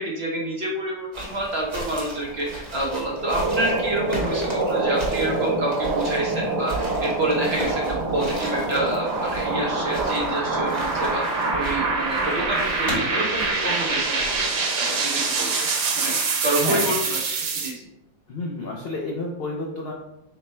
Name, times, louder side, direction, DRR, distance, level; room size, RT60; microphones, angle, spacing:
voice 1, 0.0-7.8 8.1-14.2 14.5-15.7 16.0-16.2 16.4-17.9, right 1 dB, 50° right, -3 dB, 0.8 m, -28 dB
sound 1, 1.1-14.5, right 1 dB, 30° right, 1.1 m, -36 dB
sound 2, 3.1-17.7, right 3 dB, 85° right, 1.3 m, -25 dB
voice 2, 18.3-19.9, left 2 dB, 70° left, -2 dB, 0.5 m, -29 dB
4.3 x 2.1 x 4.2 m, 0.83 s
omnidirectional pair, 1.7 m